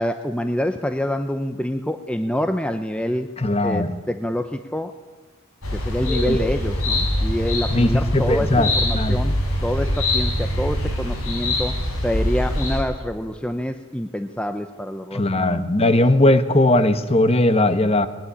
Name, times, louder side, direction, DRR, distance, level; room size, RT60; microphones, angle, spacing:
voice 1, 0.0-3.3 3.6-4.9 5.7-9.4 9.6-11.8 12.0-15.7, equal, 5° left, 8 dB, 0.6 m, -26 dB
voice 2, 3.4-3.9 6.3-6.4 7.7-9.2 15.1-18.1, left 1 dB, 30° left, 11 dB, 1.2 m, -19 dB
sound 1, 5.6-12.8, left 1 dB, 85° left, 5.6 m, -23 dB
21.5 x 19.0 x 10.0 m, 1.3 s
head